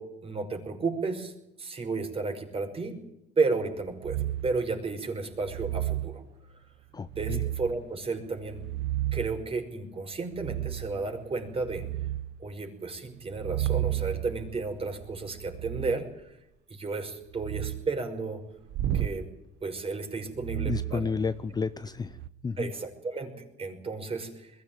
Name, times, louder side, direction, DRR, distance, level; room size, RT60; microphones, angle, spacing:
voice 1, 0.0-1.3 1.6-3.0 3.4-6.2 7.1-8.6 9.1-11.9 12.4-16.4 16.7-18.4 18.9-19.3 19.6-21.1 22.6-24.5, right 4 dB, 30° right, 4 dB, 5.8 m, -33 dB
sound 1, 4.0-4.6 5.4-6.1 7.1-7.8 8.4-9.4 10.3-10.9 11.4-12.3 13.3-16.0 17.3-17.8 18.7-19.2 20.3-21.6 22.0-22.3, right 13 dB, 70° right, 1.2 m, -32 dB
voice 2, 6.9-7.4 20.6-22.7, left 5 dB, 20° left, 14 dB, 0.7 m, -32 dB
22.0 x 15.5 x 8.9 m, 0.86 s
cardioid pair, 100°, 18 cm